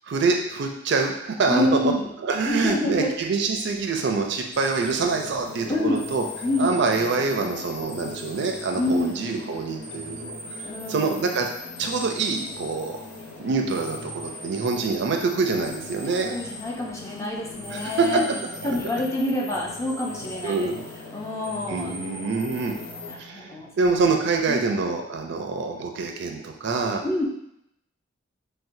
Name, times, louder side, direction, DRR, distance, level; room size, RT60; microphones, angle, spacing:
voice 1, 0.1-1.9 2.2-6.2 6.6-10.3 10.9-11.5 11.8-13.0 13.4-16.4 17.7-18.2 20.4-20.8 21.7-22.8 23.1-27.0, right 4 dB, 65° right, 3 dB, 0.4 m, -25 dB
voice 2, 1.4-2.1 2.5-3.1 5.7-6.1 6.4-6.7 8.8-9.2 10.6-11.2 16.0-18.2 18.6-20.7 21.1-21.9 23.1-24.0 24.5-24.6 27.0-27.2, left 1 dB, 15° left, -2 dB, 0.5 m, -27 dB
sound 1, 4.5-23.2, left 2 dB, 85° left, 0.7 m, -39 dB
4.3 x 2.1 x 2.6 m, 0.79 s
head